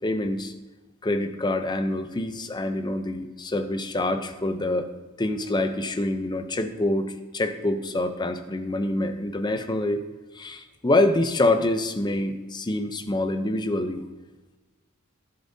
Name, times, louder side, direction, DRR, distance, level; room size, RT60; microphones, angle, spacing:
voice 1, 0.0-0.5 1.0-4.9 5.2-10.0 10.3-14.1, left 2 dB, 20° left, 7 dB, 0.6 m, -26 dB
12.0 x 10.5 x 2.7 m, 1.2 s
head